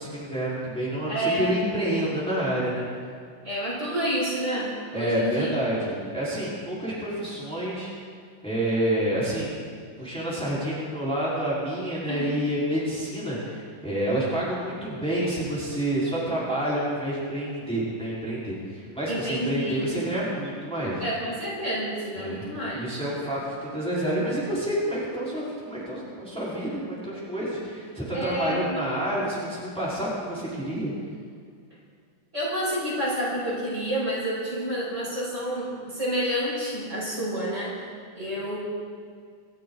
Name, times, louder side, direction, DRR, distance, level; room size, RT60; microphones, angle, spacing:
voice 1, 0.0-2.8 4.9-7.9 8.4-9.6 10.0-21.0 22.2-22.4 22.7-30.9, right 1 dB, 5° left, -9 dB, 4.6 m, -28 dB
voice 2, 1.1-1.5 3.4-5.5 12.1-12.3 19.1-19.9 21.0-23.0 28.1-28.9 32.3-37.8 38.1-38.6, equal, 35° right, -7 dB, 6.2 m, -29 dB
27.0 x 13.0 x 4.0 m, 2.2 s
omnidirectional pair, 2.1 m